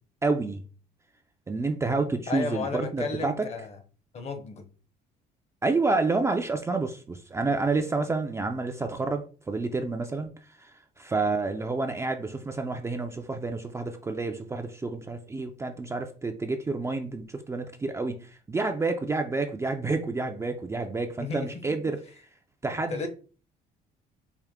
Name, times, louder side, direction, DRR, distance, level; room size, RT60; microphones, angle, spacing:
voice 1, 0.2-0.6 1.5-3.5 5.6-10.3 10.6-10.7 11.0-22.0 22.6-23.1, right 3 dB, 15° right, 0.4 m, -29 dB
voice 2, 2.3-3.8 4.1-4.7 21.2-21.5 22.9-23.1, left 4 dB, 40° left, 0.7 m, -33 dB
4.6 x 2.1 x 3.5 m
cardioid pair, 110°, 17 cm